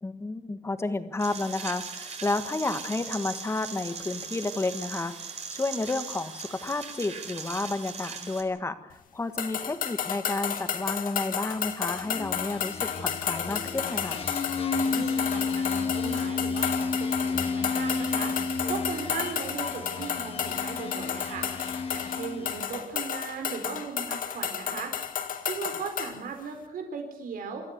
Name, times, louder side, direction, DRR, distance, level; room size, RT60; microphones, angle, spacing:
voice 1, 0.0-14.2, left 2 dB, 20° left, 10 dB, 1.5 m, -31 dB
sound 1, 1.2-8.4, right 5 dB, 50° right, 4.0 m, -39 dB
sound 2, 9.4-26.2, left 8 dB, 75° left, 1.8 m, -32 dB
sound 3, 11.9-22.8, left 4 dB, 45° left, 1.9 m, -32 dB
voice 2, 14.8-18.3 18.7-21.5 21.9-24.9 25.4-27.6, right 5 dB, 90° right, 5 dB, 4.1 m, -37 dB
25.5 x 14.0 x 8.2 m, 0.84 s
wide cardioid pair, 155°, 14 cm